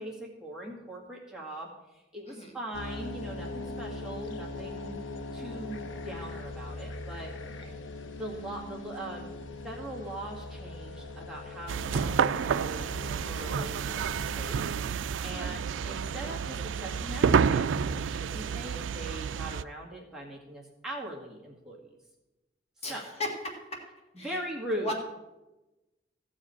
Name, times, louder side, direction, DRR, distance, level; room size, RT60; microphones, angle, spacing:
voice 1, 0.0-5.0 5.3-7.3 8.1-9.4 9.6-14.7 15.2-21.8 22.9-23.1 24.2-24.9, right 1 dB, 5° right, -4 dB, 1.8 m, -40 dB
sound 1, 2.7-14.9, left 2 dB, 85° left, 0.8 m, -41 dB
sound 2, 11.7-19.6, right 6 dB, 80° right, 0.3 m, -29 dB
voice 2, 15.3-15.7 22.8-23.9 24.2-24.4 24.8-24.9, left 1 dB, 35° left, 1 dB, 1.7 m, -37 dB
14.5 x 5.0 x 8.5 m, 1.0 s
head